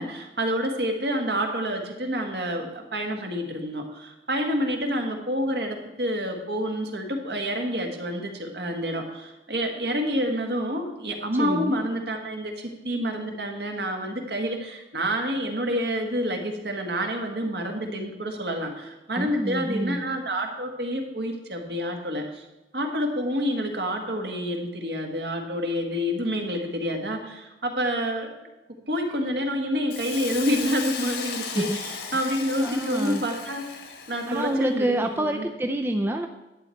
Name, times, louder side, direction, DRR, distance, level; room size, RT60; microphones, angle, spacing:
voice 1, 0.0-22.4 22.7-28.3 28.9-33.8 34.1-35.5, equal, 60° right, 3 dB, 1.7 m, -28 dB
voice 2, 11.4-11.8 19.1-20.0 31.5-31.8 32.1-32.2 32.6-33.2 34.3-36.3, right 1 dB, 15° right, 4 dB, 0.4 m, -27 dB
Hiss, 29.9-34.6, left 6 dB, 65° left, 1.4 m, -36 dB
11.5 x 8.5 x 4.5 m, 1.0 s
head